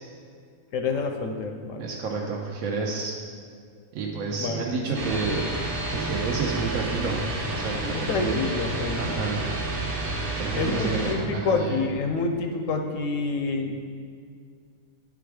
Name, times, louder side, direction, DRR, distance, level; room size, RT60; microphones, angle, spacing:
voice 1, 0.7-1.9 4.4-4.6 5.0-5.2 7.9-9.5 10.6-13.8, left 4 dB, 70° left, 5 dB, 0.9 m, -28 dB
voice 2, 1.8-3.1 3.9-5.5 5.9-7.2 7.5-8.3 8.9-9.5 10.4-11.8, right 4 dB, 75° right, -1 dB, 1.1 m, -30 dB
sound 1, 4.0-12.2, left 1 dB, 55° left, 0.4 m, -39 dB
sound 2, 4.9-11.1, right 2 dB, 40° right, 1.2 m, -31 dB
9.3 x 3.6 x 4.8 m, 2.1 s
omnidirectional pair, 1.5 m